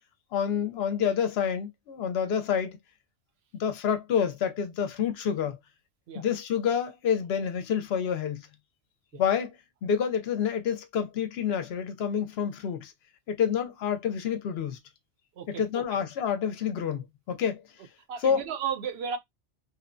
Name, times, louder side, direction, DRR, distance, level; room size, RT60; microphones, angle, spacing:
voice 1, 0.3-2.8 3.6-5.6 6.1-8.5 9.1-9.6 9.8-12.9 13.3-14.8 15.5-17.6 18.2-18.4, left 8 dB, 70° left, 0.8 m, -28 dB
voice 2, 15.4-15.8 18.1-19.2, right 7 dB, 65° right, 0.8 m, -34 dB
2.9 x 2.1 x 2.5 m
omnidirectional pair, 1.2 m